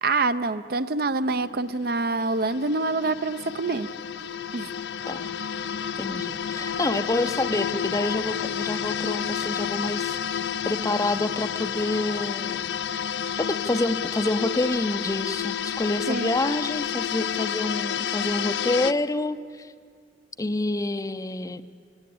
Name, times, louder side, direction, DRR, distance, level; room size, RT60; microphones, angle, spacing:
voice 1, 0.0-3.9 4.5-4.7 16.1-16.4, right 3 dB, 60° right, 12 dB, 0.6 m, -26 dB
sound 1, 1.2-18.9, left 8 dB, 75° left, 0.5 m, -30 dB
voice 2, 6.0-12.6 12.9-13.0 13.4-19.7 20.4-21.6, left 2 dB, 20° left, 12 dB, 0.5 m, -28 dB
21.5 x 18.0 x 8.5 m, 2.1 s
head